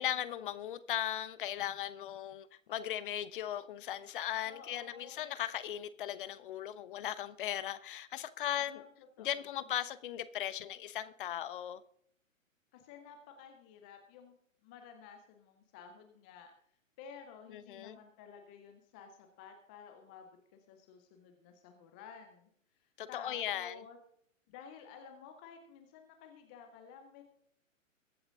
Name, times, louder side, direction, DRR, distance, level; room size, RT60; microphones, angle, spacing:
voice 1, 0.0-8.8 9.2-11.8 17.5-18.0 23.0-23.7, left 11 dB, 40° left, 1.0 m, -38 dB
voice 2, 4.4-5.3 8.4-9.6 12.7-14.4 14.6-16.5 17.0-20.3 20.7-22.5 23.1-24.0 24.5-27.2, left 6 dB, 5° left, 0.4 m, -53 dB
22.5 x 7.8 x 3.7 m
figure-of-eight pair, 125°, 40 cm